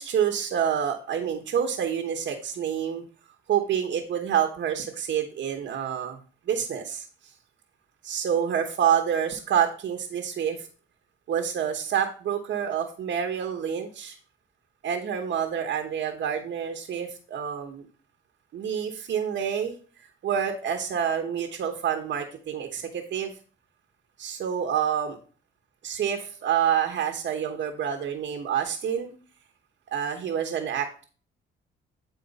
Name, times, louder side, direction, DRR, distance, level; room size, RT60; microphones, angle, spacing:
voice 1, 0.0-3.0 3.5-6.2 6.5-7.1 8.0-10.7 11.3-14.2 14.8-17.8 18.5-23.3 24.2-25.2 25.8-29.1 29.9-31.0, right 8 dB, 65° right, 3 dB, 1.1 m, -28 dB
8.9 x 4.4 x 4.1 m, 0.39 s
cardioid pair, 90°, 20 cm